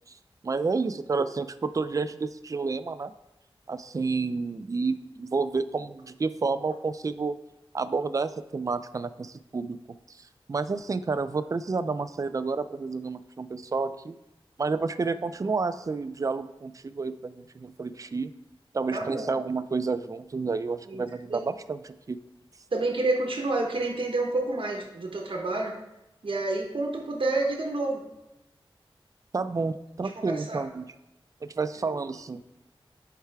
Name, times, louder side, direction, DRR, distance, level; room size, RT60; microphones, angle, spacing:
voice 1, 0.4-3.1 3.7-7.4 7.7-9.8 10.1-10.2 10.5-14.2 14.6-18.3 18.7-22.2 29.3-30.9 31.4-32.4, right 4 dB, 35° right, 12 dB, 0.3 m, -30 dB
voice 2, 18.9-19.3 20.9-21.0 21.3-21.4 22.7-25.7 26.2-28.0 30.2-30.6 31.9-32.1, right 2 dB, 65° right, 1 dB, 1.1 m, -29 dB
10.0 x 4.7 x 3.5 m, 0.92 s
wide cardioid pair, 90°, 9 cm